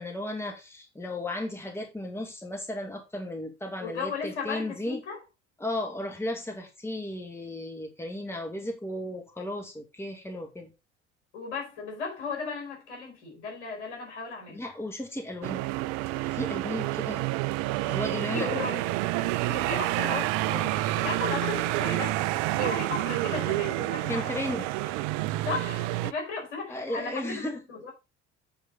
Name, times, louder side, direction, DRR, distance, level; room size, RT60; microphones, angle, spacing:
voice 1, 0.0-5.0 5.6-10.7 14.5-15.6 16.2-17.3 17.9-18.5 24.1-24.7 26.7-27.6, left 1 dB, 5° left, 2.3 m, -35 dB
voice 2, 3.8-5.2 11.3-14.6 18.3-18.9 19.2-22.2 22.5-24.7 25.4-27.9, left 4 dB, 70° left, 5.0 m, -35 dB
sound 1, 15.4-26.1, right 17 dB, 60° right, 0.5 m, -29 dB
8.7 x 4.6 x 5.3 m
figure-of-eight pair, 55°, 35 cm